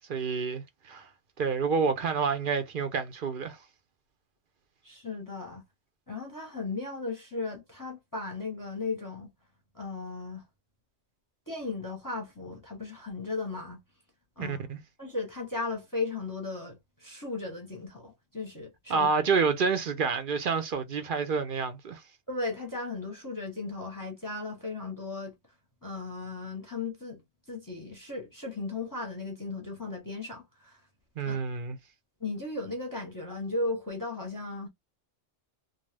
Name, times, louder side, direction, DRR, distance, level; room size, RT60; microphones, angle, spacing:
voice 1, 0.1-1.1 1.4-3.6 14.4-14.8 18.9-22.0 31.2-31.8, right 5 dB, 55° right, 0.7 m, -28 dB
voice 2, 4.8-5.6 6.1-9.3 9.7-10.4 11.5-13.8 14.4-14.6 15.0-19.1 22.3-25.3 25.8-27.2 27.5-30.8 31.3-31.4 32.2-34.7, left 3 dB, 20° left, 0.8 m, -36 dB
2.5 x 2.3 x 3.3 m
omnidirectional pair, 1.3 m